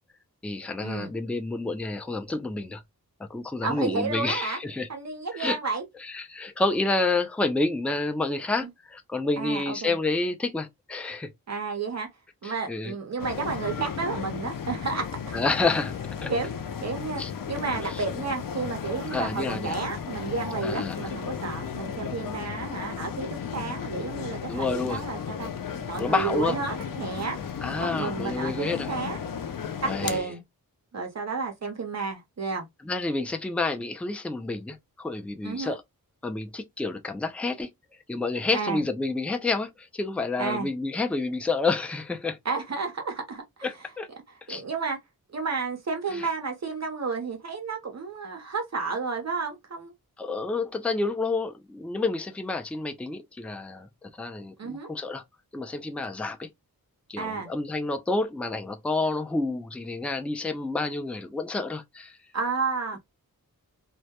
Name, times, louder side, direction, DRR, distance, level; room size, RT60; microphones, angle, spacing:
voice 1, 0.4-2.8 3.2-4.9 5.3-5.6 6.0-11.3 12.4-12.9 15.3-16.0 16.2-16.3 17.2-17.3 17.8-18.0 19.1-19.8 20.6-21.1 24.5-25.0 26.0-26.6 27.6-28.9 29.8-30.2 32.8-35.8 36.2-37.7 38.1-42.4 43.6-44.1 44.5-44.6 46.1-46.3 50.2-55.2 55.5-56.5 57.1-62.2, left 3 dB, 5° left, 0.3 m, -29 dB
voice 2, 3.6-4.6 4.9-5.8 9.4-10.0 11.5-12.1 12.4-15.4 16.3-16.5 16.8-17.2 17.5-25.5 25.9-27.4 27.8-29.2 30.0-30.4 30.9-32.7 35.4-35.8 38.5-38.8 40.4-40.7 42.4-43.4 44.5-45.0 45.3-49.9 54.6-54.9 57.2-57.5 62.3-63.0, right 4 dB, 45° right, 0.6 m, -31 dB
sound 1, 13.2-30.2, left 7 dB, 65° left, 0.5 m, -34 dB
2.2 x 2.1 x 2.8 m
wide cardioid pair, 85°, 36 cm